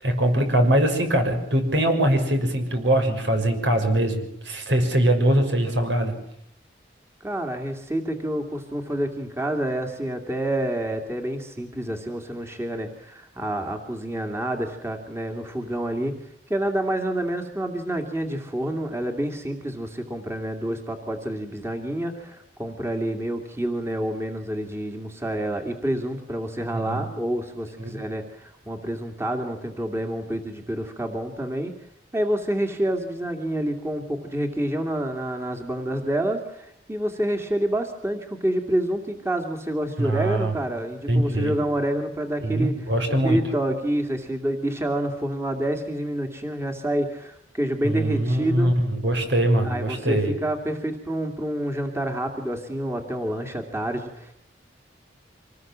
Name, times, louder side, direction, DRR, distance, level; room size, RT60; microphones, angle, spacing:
voice 1, 0.0-6.1 26.7-27.1 27.8-28.0 40.0-40.6 41.1-41.6 42.4-43.4 47.8-50.4, right 1 dB, 75° right, 5 dB, 6.1 m, -22 dB
voice 2, 7.2-16.1 16.5-31.7 32.1-42.9 43.2-48.7 49.6-54.3, right 1 dB, 15° right, 4 dB, 2.4 m, -28 dB
25.5 x 19.5 x 7.5 m, 0.76 s
head